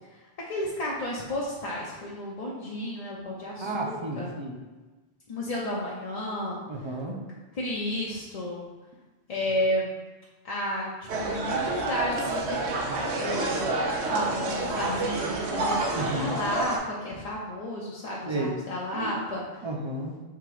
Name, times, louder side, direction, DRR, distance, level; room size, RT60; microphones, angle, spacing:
voice 1, 0.5-4.3 5.3-6.6 7.6-8.6 9.3-9.9 10.4-12.6 13.2-13.6 14.1-19.4, left 1 dB, 45° left, -5 dB, 0.6 m, -32 dB
voice 2, 3.6-4.5 6.7-7.2 15.9-16.4 18.3-18.5 18.9-19.1 19.6-20.2, right 1 dB, 35° right, -1 dB, 0.5 m, -32 dB
sound 1, 11.1-16.8, right 2 dB, 85° right, 0.9 m, -28 dB
3.6 x 2.9 x 4.7 m, 1.2 s
omnidirectional pair, 1.1 m